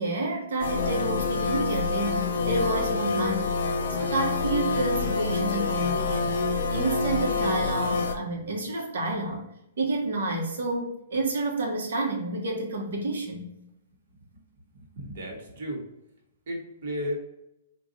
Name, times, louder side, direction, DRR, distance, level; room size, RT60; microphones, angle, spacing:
voice 1, 0.0-3.6 3.9-6.4 6.7-9.4 9.8-13.5, right 2 dB, 80° right, -1 dB, 0.9 m, -29 dB
sound 1, 0.6-8.1, left 4 dB, 65° left, 0.5 m, -27 dB
voice 2, 14.7-15.8 16.5-17.1, equal, 50° right, -1 dB, 1.0 m, -34 dB
3.8 x 2.3 x 3.8 m, 0.84 s
hypercardioid pair, 175°, 0 cm